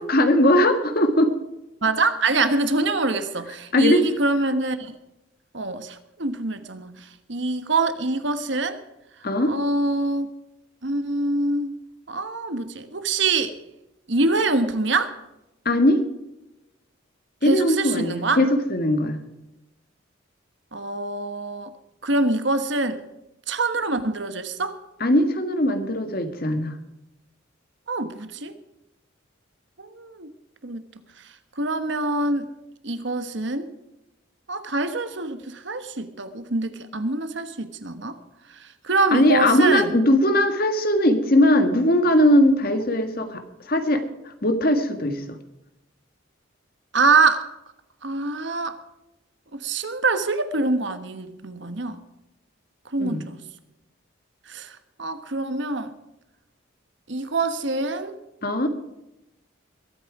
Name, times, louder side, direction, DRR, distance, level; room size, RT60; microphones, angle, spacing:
voice 1, 0.0-1.3 3.7-4.0 9.2-9.5 15.6-16.0 17.4-19.2 25.0-26.7 39.1-45.4 53.0-53.2 58.4-58.7, left 1 dB, 50° left, 8 dB, 1.7 m, -20 dB
voice 2, 1.8-4.9 5.5-8.8 9.5-10.3 10.8-11.8 12.1-13.5 14.1-15.1 17.4-18.4 20.7-21.7 22.0-23.0 23.5-24.8 27.9-28.5 29.8-30.3 30.6-30.8 31.6-32.5 32.8-33.7 34.5-38.2 38.6-40.0 46.9-47.5 48.0-48.8 49.5-52.0 52.9-53.4 54.5-55.9 57.1-58.2, right 3 dB, 65° right, 10 dB, 1.3 m, -25 dB
22.0 x 9.1 x 4.8 m, 0.93 s
head